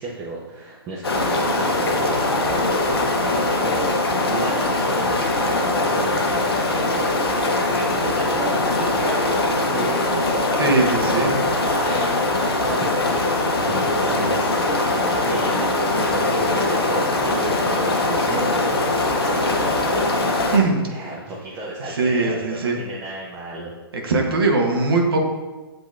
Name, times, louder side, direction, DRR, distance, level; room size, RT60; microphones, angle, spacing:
voice 1, 0.0-3.9 4.2-7.2 7.7-20.2 20.9-23.7, right 2 dB, 20° right, -5 dB, 0.7 m, -33 dB
sound 1, 1.0-20.6, left 2 dB, 75° left, 0.8 m, -21 dB
voice 2, 10.6-11.4 20.5-20.8 21.9-22.8 23.9-25.2, right 3 dB, 70° right, 1 dB, 0.9 m, -20 dB
7.6 x 2.9 x 2.4 m, 1.2 s
hypercardioid pair, 135°, 13 cm